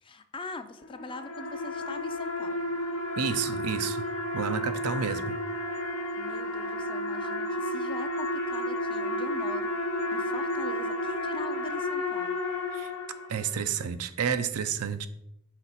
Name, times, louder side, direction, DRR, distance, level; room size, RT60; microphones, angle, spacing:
voice 1, 0.0-2.7 6.1-9.7 10.1-12.4, left 3 dB, 25° left, 9 dB, 0.4 m, -42 dB
sound 1, 0.8-13.6, left 1 dB, 85° left, 0.8 m, -32 dB
voice 2, 3.2-4.0 4.3-5.4 12.7-12.9 13.3-15.1, right 7 dB, 75° right, 11 dB, 0.5 m, -30 dB
5.8 x 4.2 x 4.1 m, 0.80 s
head